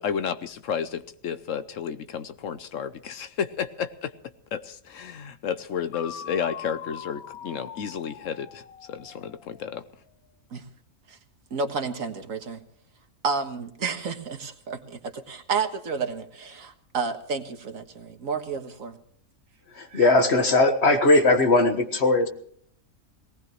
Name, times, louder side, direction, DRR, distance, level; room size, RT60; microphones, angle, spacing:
voice 1, 0.0-4.1 4.5-8.6 8.9-9.8, left 7 dB, 70° left, 12 dB, 1.1 m, -32 dB
sound 1, 5.9-9.8, left 8 dB, 85° left, 1.4 m, -42 dB
voice 2, 11.5-12.6 13.2-18.9 19.9-20.1, right 5 dB, 70° right, 6 dB, 1.8 m, -31 dB
voice 3, 19.7-22.3, left 2 dB, 50° left, 6 dB, 1.8 m, -19 dB
19.0 x 18.5 x 3.2 m, 0.63 s
omnidirectional pair, 1.5 m